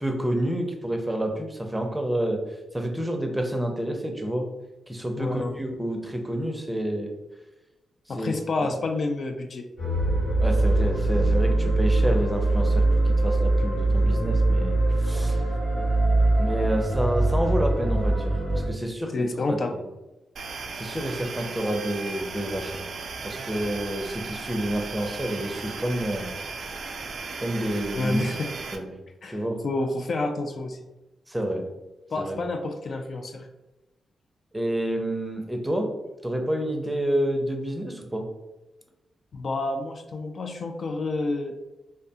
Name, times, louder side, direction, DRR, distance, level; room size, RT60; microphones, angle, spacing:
voice 1, 0.0-2.4 2.7-4.5 4.9-7.2 8.1-8.3 8.7-8.8 10.4-15.5 16.4-19.9 20.7-22.8 23.2-26.3 27.4-29.0 29.3-29.6 31.3-31.7 32.2-32.4 34.5-35.9 36.2-38.3, right 1 dB, 10° right, 3 dB, 0.5 m, -29 dB
voice 2, 5.2-5.6 8.1-9.7 19.1-19.8 28.0-28.5 29.2-30.8 32.1-33.5 39.3-41.6, left 2 dB, 60° left, 4 dB, 0.3 m, -29 dB
sound 1, 9.8-18.7, right 2 dB, 75° left, 1.0 m, -22 dB
sound 2, 20.4-28.8, right 4 dB, 70° right, 0.3 m, -36 dB
2.5 x 2.2 x 2.6 m, 1.0 s
supercardioid pair, 55°, 0 cm